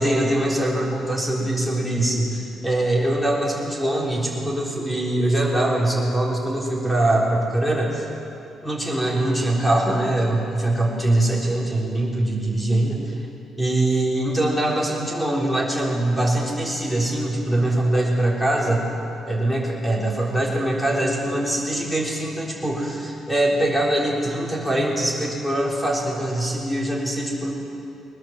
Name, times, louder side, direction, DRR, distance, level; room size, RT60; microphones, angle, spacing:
voice 1, 0.0-8.1 8.6-13.1 13.6-18.8 19.3-27.5, right 1 dB, 5° left, -3 dB, 4.0 m, -23 dB
21.5 x 20.0 x 7.6 m, 2.7 s
cardioid pair, 170°, 0 cm